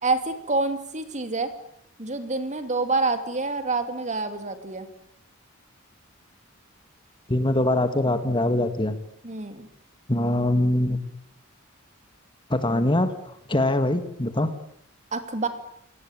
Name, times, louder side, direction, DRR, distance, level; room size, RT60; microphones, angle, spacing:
voice 1, 0.0-1.5 2.0-4.9 9.2-9.7 15.1-15.5, right 3 dB, 35° right, 9 dB, 2.8 m, -27 dB
voice 2, 7.3-9.0 10.1-11.0 12.5-13.1 13.5-14.5, left 1 dB, 25° left, 10 dB, 1.9 m, -22 dB
28.0 x 18.5 x 9.1 m, 0.70 s
head